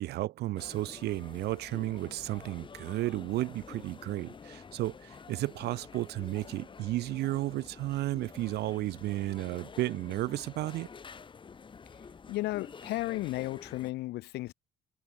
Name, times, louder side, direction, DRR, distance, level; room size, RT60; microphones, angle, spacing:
voice 1, 0.0-10.9, right 16 dB, 75° right, 1.3 m, -33 dB
sound 1, 0.6-13.9, left 5 dB, 30° left, 1.8 m, -49 dB
voice 2, 12.3-14.5, left 18 dB, 80° left, 1.3 m, -34 dB
cardioid pair, 110°, 17 cm